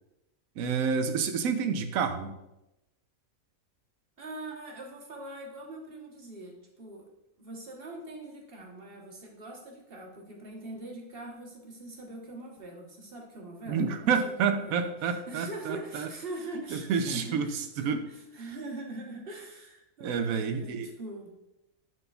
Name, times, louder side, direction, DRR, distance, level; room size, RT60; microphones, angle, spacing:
voice 1, 0.6-2.3 13.7-16.1 16.7-18.0 20.0-20.9, right 6 dB, 80° right, 7 dB, 1.1 m, -29 dB
voice 2, 4.2-7.1 7.4-21.3, right 2 dB, 45° right, -1 dB, 1.3 m, -43 dB
11.0 x 3.8 x 2.3 m, 0.91 s
omnidirectional pair, 1.5 m